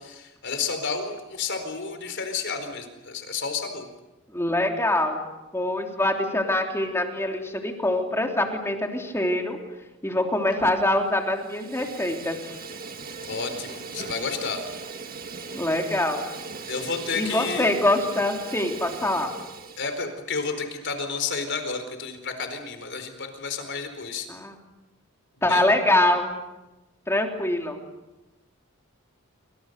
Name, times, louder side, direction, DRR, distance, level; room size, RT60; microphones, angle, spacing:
voice 1, 0.0-3.9 13.3-14.6 16.7-17.7 19.8-24.3 25.5-25.6, left 5 dB, 55° left, 7 dB, 4.3 m, -31 dB
voice 2, 4.3-5.2 5.5-9.6 10.0-12.5 15.5-16.2 17.1-19.3 24.3-24.5 25.4-26.3 27.1-27.8, left 1 dB, 10° left, 2 dB, 3.2 m, -24 dB
Fire, 10.5-11.0 11.3-20.1, right 4 dB, 40° right, 2.0 m, -39 dB
27.5 x 25.5 x 6.7 m, 1.0 s
head